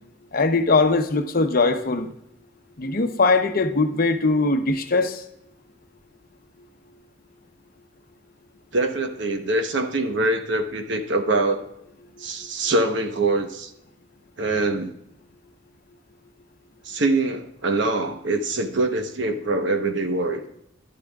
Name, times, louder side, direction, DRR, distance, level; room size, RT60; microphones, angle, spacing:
voice 1, 0.3-2.1 2.8-5.2 12.2-12.3, left 3 dB, 50° left, 7 dB, 0.7 m, -21 dB
voice 2, 8.7-11.6 12.2-13.7 14.4-14.9 16.8-20.5, right 2 dB, 65° right, 6 dB, 1.0 m, -24 dB
11.5 x 11.0 x 2.3 m, 0.81 s
head